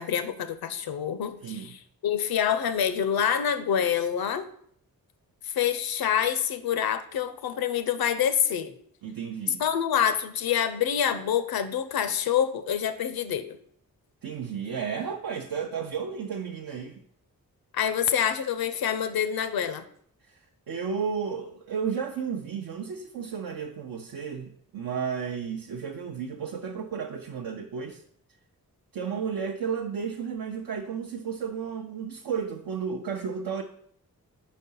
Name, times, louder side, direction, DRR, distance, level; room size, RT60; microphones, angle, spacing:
voice 1, 0.0-4.5 5.4-8.7 9.6-13.6 17.7-19.8, left 8 dB, 80° left, 11 dB, 0.6 m, -26 dB
voice 2, 1.4-1.7 9.0-9.6 14.2-17.0 20.3-28.0 28.9-33.6, right 6 dB, 75° right, 2 dB, 0.6 m, -33 dB
4.7 x 4.1 x 5.4 m, 0.64 s
cardioid pair, 45°, 36 cm